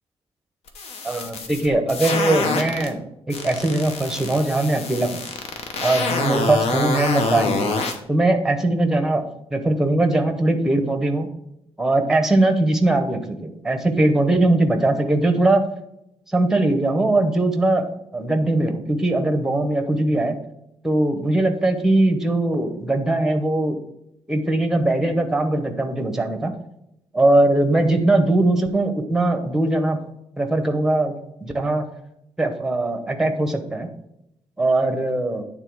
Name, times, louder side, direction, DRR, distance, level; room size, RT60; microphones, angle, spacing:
sound 1, 0.7-2.9 3.3-8.0, left 3 dB, 75° left, 1.0 m, -26 dB
voice 1, 1.0-3.0 3.3-5.2 5.8-7.7 8.1-9.3 9.5-11.3 11.8-15.7 16.3-17.9 18.1-20.4 20.8-23.8 24.3-26.5 27.1-30.0 30.4-31.1 31.4-31.8 32.4-33.9 34.6-35.4, right 2 dB, 5° right, 6 dB, 0.8 m, -20 dB
9.1 x 3.7 x 4.6 m, 0.82 s
wide cardioid pair, 170°, 11 cm